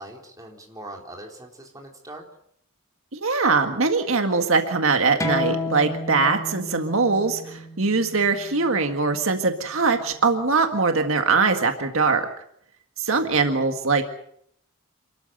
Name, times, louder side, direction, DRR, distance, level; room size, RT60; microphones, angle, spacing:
voice 1, 0.0-2.3 13.1-13.4, right 1 dB, 15° right, 0 dB, 4.1 m, -41 dB
voice 2, 3.1-12.3 13.0-14.0, right 4 dB, 70° right, 6 dB, 1.8 m, -22 dB
sound 1, 5.2-10.4, left 1 dB, 15° left, 2.1 m, -33 dB
27.5 x 13.5 x 7.9 m, 0.70 s
head